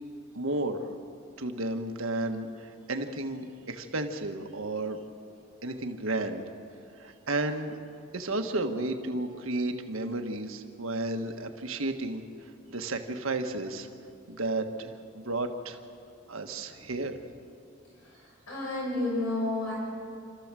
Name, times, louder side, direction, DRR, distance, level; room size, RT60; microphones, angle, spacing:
voice 1, 0.3-0.9 1.4-5.0 5.6-6.4 7.0-7.7 8.1-12.2 12.7-13.9 14.3-15.8 16.3-17.2, right 2 dB, 80° right, 5 dB, 1.5 m, -32 dB
voice 2, 18.5-19.7, left 2 dB, 80° left, -4 dB, 6.0 m, -30 dB
28.5 x 13.5 x 7.6 m, 2.6 s
head